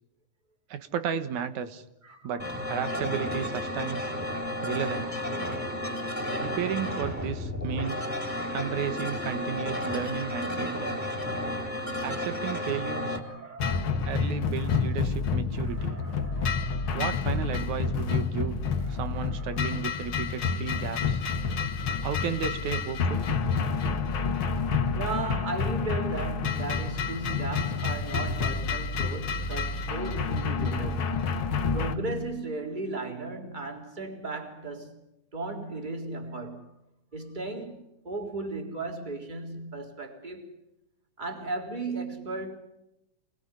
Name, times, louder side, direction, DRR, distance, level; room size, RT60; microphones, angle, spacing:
voice 1, 0.7-1.8 2.2-4.1 4.4-5.2 6.4-8.1 8.5-11.0 12.0-13.2 14.0-16.0 16.9-18.6 18.9-21.2 22.0-23.3, right 8 dB, 65° right, 2.8 m, -33 dB
voice 2, 2.0-3.0 4.6-5.7 10.2-11.2 12.5-14.1 14.4-15.0 15.6-18.3 18.7-20.1 20.5-20.9 21.9-22.0 23.2-23.6 24.4-31.3 31.7-35.0 35.3-36.7 37.1-40.5 41.2-42.6, right 2 dB, 15° right, 3.7 m, -37 dB
sound 1, 2.4-13.2, left 1 dB, 5° left, 3.2 m, -32 dB
sound 2, 13.6-32.0, left 5 dB, 45° left, 2.0 m, -29 dB
28.5 x 20.5 x 9.9 m
omnidirectional pair, 3.9 m